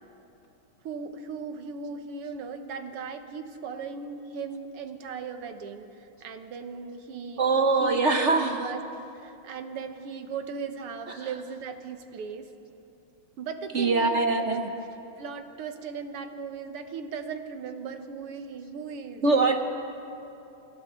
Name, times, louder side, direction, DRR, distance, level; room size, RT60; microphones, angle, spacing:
voice 1, 0.8-7.4 7.8-8.8 9.2-12.5 13.4-14.7 15.2-19.4, right 5 dB, 90° right, 7 dB, 2.1 m, -37 dB
voice 2, 7.4-8.7 11.2-11.3 13.7-14.7 19.2-19.6, right 3 dB, 65° right, 5 dB, 0.7 m, -23 dB
28.0 x 25.5 x 3.7 m, 2.9 s
omnidirectional pair, 2.4 m